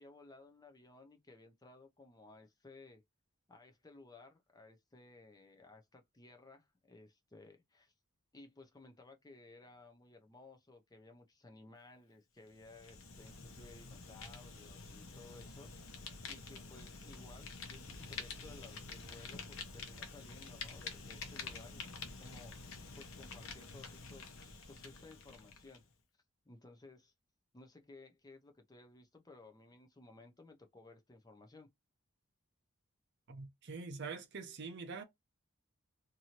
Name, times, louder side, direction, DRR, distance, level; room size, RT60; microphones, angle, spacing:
voice 1, 0.0-3.0 3.5-7.9 8.3-22.6 22.9-25.8 26.5-27.1 27.5-31.7, left 2 dB, 15° left, 0.5 m, -58 dB
Fire, 12.5-25.8, left 4 dB, 65° left, 0.8 m, -48 dB
voice 2, 33.3-35.0, right 4 dB, 50° right, 0.6 m, -44 dB
2.7 x 2.6 x 2.8 m
head